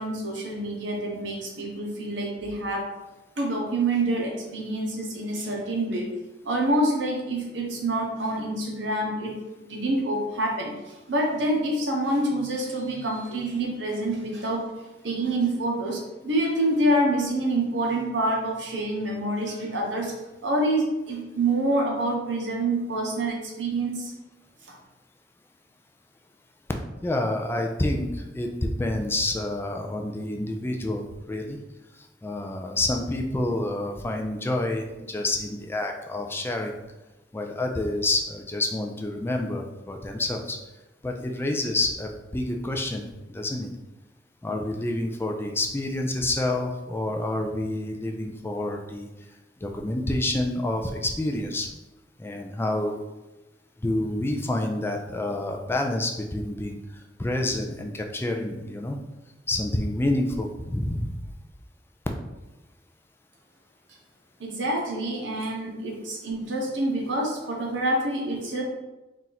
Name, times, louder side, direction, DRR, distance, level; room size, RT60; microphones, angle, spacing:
voice 1, 0.0-2.9 3.4-6.1 6.4-9.3 9.7-14.6 15.0-20.1 20.4-24.1 64.4-68.6, right 1 dB, 75° right, -1 dB, 1.0 m, -27 dB
voice 2, 27.0-31.6 32.2-36.8 37.3-40.6 41.0-43.7 44.4-49.1 49.6-51.7 52.2-53.0 53.8-56.8 57.2-59.0 59.5-61.1, left 1 dB, 15° left, 2 dB, 0.3 m, -28 dB
4.2 x 2.5 x 4.0 m, 1.1 s
head